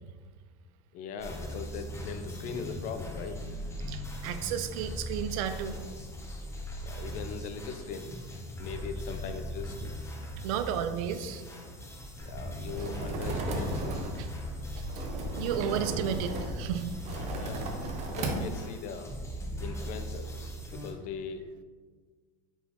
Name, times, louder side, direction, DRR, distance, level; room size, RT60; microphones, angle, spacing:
voice 1, 0.9-3.5 6.8-8.1 8.6-9.9 12.2-14.0 17.3-19.1 19.6-20.4 20.7-21.4, left 5 dB, 45° left, 8 dB, 0.4 m, -40 dB
sound 1, 1.2-20.9, equal, 15° left, 0.7 m, -40 dB
voice 2, 3.9-5.8 10.4-11.4 14.2-14.3 15.3-17.0, right 9 dB, 70° right, 10 dB, 0.4 m, -33 dB
sound 2, 12.2-18.6, right 2 dB, 35° right, 0.7 m, -35 dB
4.1 x 3.7 x 2.9 m, 1.5 s
supercardioid pair, 115°, 18 cm